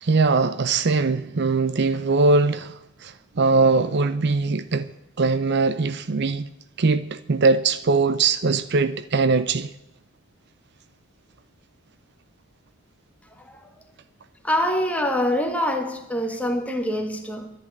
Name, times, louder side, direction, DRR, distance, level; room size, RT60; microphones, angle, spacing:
voice 1, 0.0-4.9 5.2-6.5 6.8-9.7, right 3 dB, 50° right, 0.6 m, -21 dB
voice 2, 13.4-13.7 14.4-17.5, equal, 5° left, 1.6 m, -25 dB
11.5 x 10.5 x 9.7 m
head